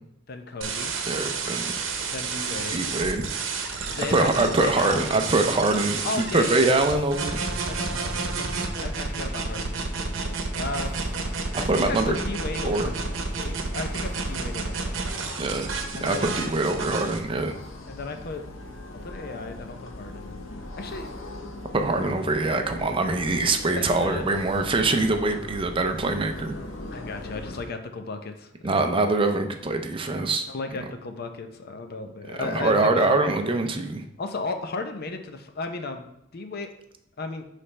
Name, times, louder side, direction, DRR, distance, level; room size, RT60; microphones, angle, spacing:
voice 1, 0.3-0.9 2.1-2.8 3.9-5.1 6.0-6.7 7.7-10.9 11.6-15.0 15.9-16.6 17.9-18.4 19.0-20.3 20.8-21.1 23.7-24.3 26.9-28.7 30.5-33.2 34.2-36.7 37.2-37.4, left 3 dB, 55° left, 6 dB, 0.6 m, -35 dB
sound 1, 0.6-17.2, right 4 dB, 85° right, 0.8 m, -30 dB
voice 2, 1.1-1.7 2.7-3.2 4.1-7.4 11.6-12.2 12.6-12.9 15.4-15.7 16.0-17.5 21.7-26.5 28.6-30.5 32.4-34.0, right 2 dB, 25° right, 6 dB, 0.5 m, -24 dB
sound 2, 10.5-27.6, left 1 dB, 90° left, 0.8 m, -40 dB
9.8 x 3.3 x 3.2 m, 0.81 s
head